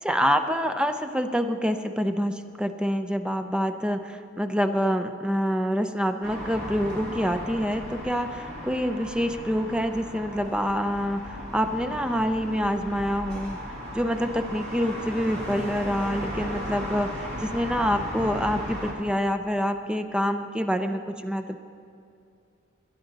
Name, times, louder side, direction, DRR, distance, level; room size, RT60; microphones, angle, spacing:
voice 1, 0.0-13.6 13.9-21.6, equal, 5° right, 8 dB, 0.4 m, -26 dB
sound 1, 6.2-18.9, equal, 55° right, 2.6 m, -36 dB
20.5 x 11.0 x 3.9 m, 2.5 s
head